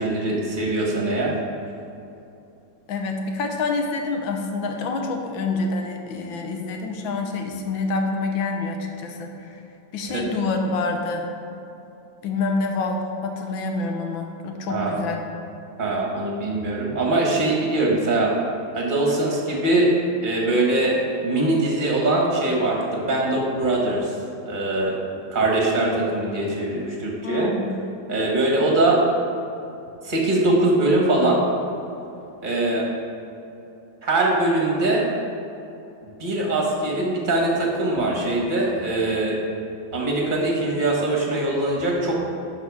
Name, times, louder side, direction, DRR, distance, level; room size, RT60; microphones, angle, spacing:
voice 1, 0.0-1.3 10.1-10.2 14.7-15.0 15.8-18.3 18.7-19.9 20.2-21.0 21.2-24.1 24.4-25.0 25.3-27.5 28.1-29.0 30.0-31.4 32.4-32.9 34.0-35.1 36.2-39.4 39.9-42.3, right 2 dB, 30° right, -2 dB, 1.4 m, -22 dB
voice 2, 2.9-9.6 9.9-11.3 12.2-15.4 27.2-27.7, left 3 dB, 85° left, 3 dB, 1.6 m, -27 dB
11.5 x 4.1 x 4.8 m, 2.8 s
omnidirectional pair, 2.1 m